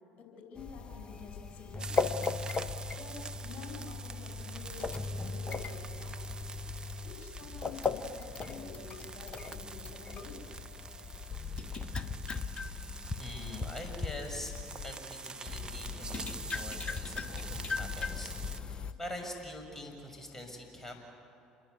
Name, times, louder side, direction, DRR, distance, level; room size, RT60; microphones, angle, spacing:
voice 1, 0.1-2.2 3.0-6.3 7.0-10.5, left 4 dB, 50° left, 2 dB, 5.7 m, -49 dB
sound 1, 0.6-14.9 15.5-18.9, left 4 dB, 30° left, 1.3 m, -38 dB
sound 2, 1.8-18.6, right 4 dB, 25° right, 1.0 m, -46 dB
voice 2, 13.2-14.5 14.8-20.9, left 1 dB, 10° left, 2 dB, 7.1 m, -44 dB
28.0 x 22.0 x 8.3 m, 2.6 s
figure-of-eight pair, 60°, 3 cm